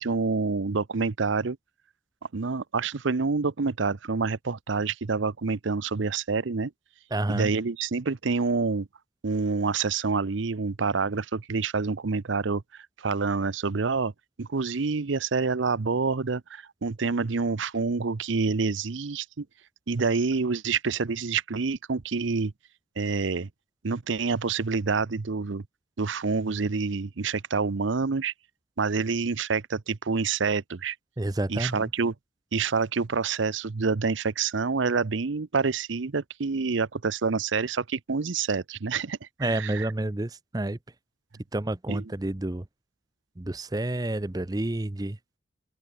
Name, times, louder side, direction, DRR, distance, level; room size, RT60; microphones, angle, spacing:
voice 1, 0.0-1.6 2.3-6.7 7.3-8.9 9.2-12.6 13.0-14.1 14.4-19.5 19.9-22.5 23.0-23.5 23.8-25.6 26.0-28.3 28.8-31.0 31.5-32.1 32.5-39.9 41.9-42.0, right 4 dB, 70° right, 0.7 m, -27 dB
voice 2, 7.1-7.5 31.2-31.9 39.4-40.8 41.5-42.6 43.4-45.2, right 1 dB, 20° right, 0.6 m, -29 dB
head